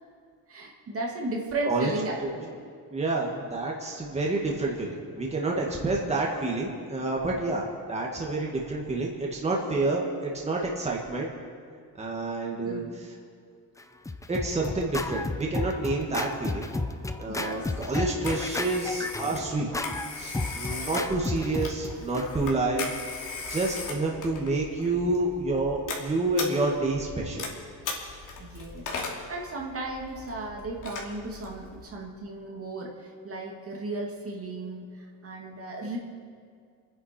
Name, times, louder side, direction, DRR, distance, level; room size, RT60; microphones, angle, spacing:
voice 1, 0.5-2.6 12.6-13.0 17.3-17.7 28.4-36.0, right 2 dB, 40° right, 0 dB, 2.1 m, -35 dB
voice 2, 2.9-11.3 12.0-13.1 14.3-16.7 17.2-19.7 20.1-22.9 23.5-27.4, right 2 dB, 15° right, -2 dB, 1.9 m, -28 dB
Scratching (performance technique), 13.8-22.2, left 2 dB, 10° left, 0.5 m, -33 dB
Telephone, 17.7-31.9, left 4 dB, 55° left, 2.8 m, -39 dB
28.0 x 10.0 x 4.5 m, 2.2 s
cardioid pair, 145°, 37 cm